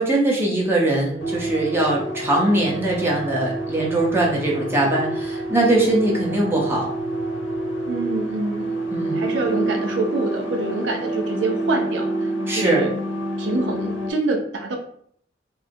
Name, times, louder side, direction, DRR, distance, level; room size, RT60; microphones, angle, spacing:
voice 1, 0.0-6.9 8.9-9.2 12.5-12.9, right 1 dB, 15° right, -4 dB, 0.7 m, -21 dB
sound 1, 1.2-14.1, right 1 dB, 70° left, 0.9 m, -28 dB
voice 2, 7.9-8.9 9.1-12.9 13.4-14.8, right 3 dB, 70° right, 3 dB, 0.4 m, -26 dB
3.7 x 2.0 x 2.6 m, 0.64 s
head